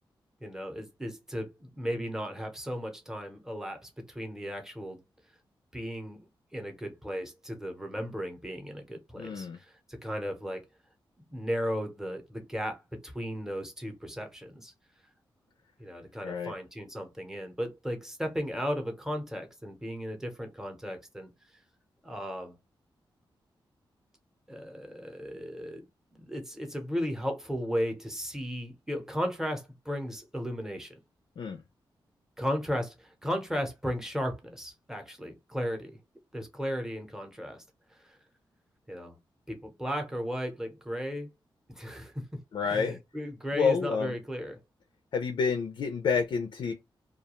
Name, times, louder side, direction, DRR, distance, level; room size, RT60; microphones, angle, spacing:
voice 1, 0.4-5.0 5.7-10.6 11.3-14.7 15.8-21.3 22.0-22.5 24.5-25.8 26.1-31.0 32.4-35.9 36.3-37.6 38.9-39.2 39.5-41.3 41.7-42.1 42.6-44.6, equal, 5° right, 0.7 m, -35 dB
voice 2, 9.2-9.6 16.2-16.5 31.4-31.6 42.5-43.0 43.5-44.2 45.1-46.7, left 5 dB, 65° left, 0.4 m, -29 dB
2.3 x 2.2 x 2.9 m
wide cardioid pair, 110°, 9 cm